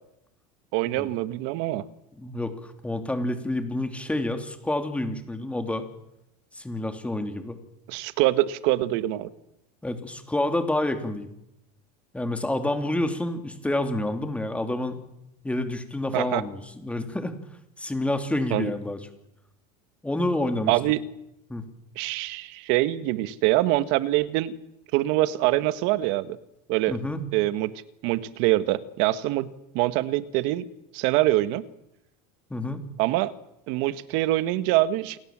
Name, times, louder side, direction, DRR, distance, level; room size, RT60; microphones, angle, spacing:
voice 1, 0.7-1.9 7.9-9.3 16.1-16.4 18.5-18.7 20.7-21.0 21.9-24.5 24.9-26.4 26.7-27.0 27.3-29.5 29.7-30.6 30.9-31.6 33.0-33.3 33.7-35.2, right 16 dB, 65° right, 13 dB, 1.6 m, -24 dB
voice 2, 2.1-5.9 6.5-7.6 9.8-11.3 12.1-15.0 15.4-17.4 17.8-19.0 20.0-20.8 21.5-21.6 26.9-27.2 32.5-32.8, left 1 dB, 5° left, 7 dB, 2.9 m, -28 dB
28.5 x 17.5 x 7.6 m, 0.85 s
supercardioid pair, 125°, 21 cm